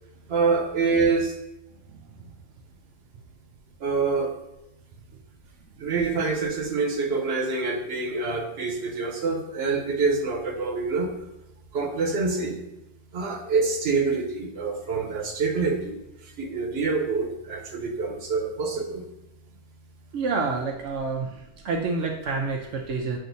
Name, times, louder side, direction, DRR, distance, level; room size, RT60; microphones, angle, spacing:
voice 1, 0.3-1.3 3.8-4.3 5.8-11.1 11.7-12.6 13.1-19.0, right 4 dB, 65° right, 0 dB, 1.1 m, -26 dB
voice 2, 20.1-21.3 21.6-23.2, right 4 dB, 85° right, 0 dB, 0.9 m, -28 dB
7.6 x 2.6 x 2.7 m, 0.90 s
omnidirectional pair, 1.2 m